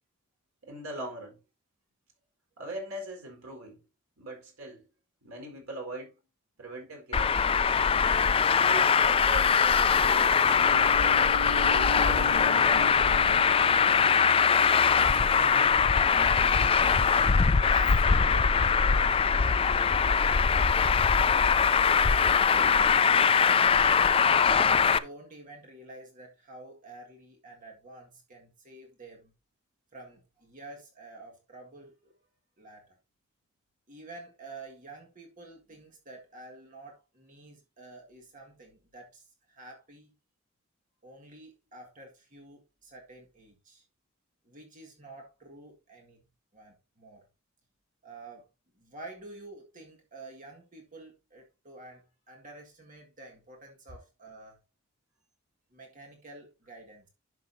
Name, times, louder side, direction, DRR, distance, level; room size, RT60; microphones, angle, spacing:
voice 1, 0.7-1.4 2.6-3.8 4.2-4.8 5.2-6.1 6.6-7.4 8.4-12.5, right 1 dB, 85° right, 4.3 m, -41 dB
Traffic noise roadway noise, 7.1-25.0, left 6 dB, 25° left, 0.3 m, -22 dB
sound 1, 10.5-16.9, equal, 15° right, 0.8 m, -42 dB
voice 2, 13.7-14.5 14.8-16.9 17.4-24.3 24.8-29.3 29.9-32.2 32.6-33.0 33.9-40.1 41.0-43.8 44.4-46.2 46.5-47.3 48.0-48.5 48.7-54.6 55.7-57.1, right 2 dB, 35° right, 1.8 m, -49 dB
11.0 x 6.6 x 2.7 m
head